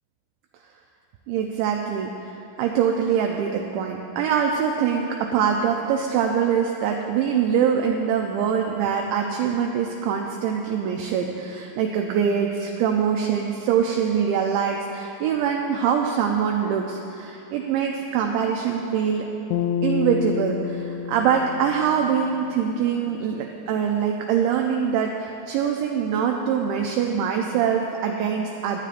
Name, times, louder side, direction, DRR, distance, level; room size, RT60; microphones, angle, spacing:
voice 1, 1.3-19.3 19.8-28.8, right 7 dB, 85° right, 1 dB, 2.5 m, -24 dB
sound 1, 19.5-22.9, left 7 dB, 90° left, 2.6 m, -29 dB
23.5 x 9.5 x 2.5 m, 2.8 s
omnidirectional pair, 5.8 m